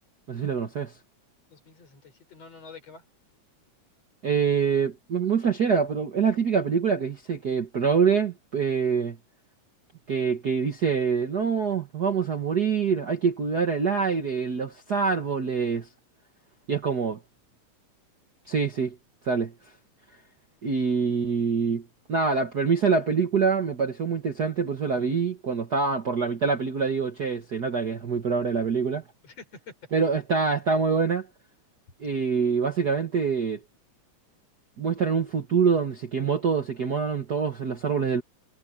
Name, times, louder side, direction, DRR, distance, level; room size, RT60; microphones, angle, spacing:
voice 1, 0.3-0.9 4.2-9.2 10.1-15.9 16.7-17.2 18.5-18.9 19.2-19.5 20.6-21.8 22.1-29.0 29.9-31.3 32.0-33.6 34.8-38.2, right 5 dB, 45° right, 1.4 m, -25 dB
voice 2, 1.5-3.0 29.2-29.8, left 4 dB, 55° left, 6.3 m, -47 dB
omnidirectional pair, 3.4 m